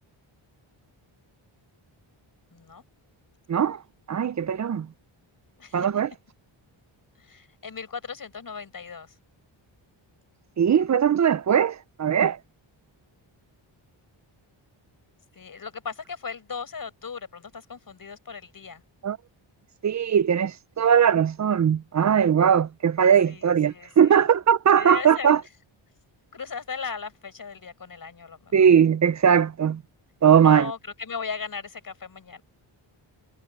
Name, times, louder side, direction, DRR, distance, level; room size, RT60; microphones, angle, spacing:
voice 1, 2.5-2.8 5.6-5.9 7.2-9.2 15.3-18.8 23.3-24.2 24.8-25.3 26.3-28.6 30.4-32.4, left 5 dB, 40° left, 5.1 m, -37 dB
voice 2, 3.5-3.8 4.1-4.9 5.7-6.1 10.6-12.4 19.0-19.2 19.8-25.4 28.5-29.8 30.2-30.7, right 8 dB, 40° right, 0.4 m, -20 dB
wide cardioid pair, 155°, 50 cm